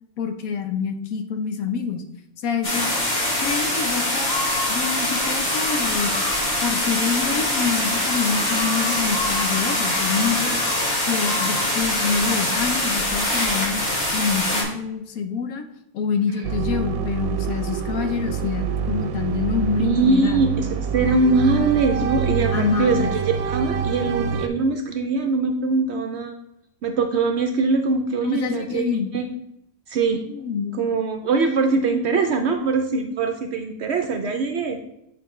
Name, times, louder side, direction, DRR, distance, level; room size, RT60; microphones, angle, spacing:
voice 1, 0.2-2.0 2.4-2.9 3.4-4.3 4.7-6.1 6.6-10.6 11.1-13.8 14.1-15.6 15.9-20.5 22.5-23.1 28.2-29.1 30.3-30.9, left 6 dB, 85° left, 7 dB, 1.1 m, -26 dB
sound 1, 2.6-14.6, left 1 dB, 45° left, 2.0 m, -23 dB
sound 2, 3.1-3.7 4.2-12.8, left 3 dB, 70° left, 1.4 m, -35 dB
sound 3, 16.4-24.5, right 7 dB, 90° right, 1.0 m, -26 dB
voice 2, 19.8-23.1 23.5-26.4 26.8-28.9 29.1-29.3 29.9-30.2 30.8-34.8, right 3 dB, 65° right, 5 dB, 0.7 m, -22 dB
7.6 x 4.5 x 3.1 m, 0.81 s
omnidirectional pair, 1.5 m